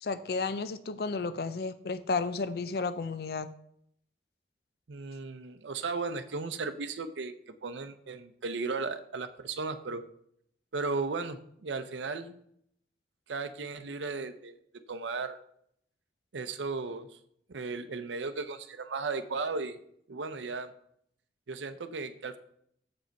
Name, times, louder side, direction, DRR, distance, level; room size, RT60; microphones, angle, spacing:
voice 1, 0.0-3.5, left 4 dB, 60° left, 12 dB, 0.4 m, -32 dB
voice 2, 4.9-10.0 10.7-12.4 13.3-14.5 14.9-15.4 16.3-17.1 17.5-19.8 20.1-20.7 21.5-22.4, right 4 dB, 90° right, 9 dB, 0.6 m, -35 dB
7.3 x 5.0 x 5.2 m, 0.68 s
head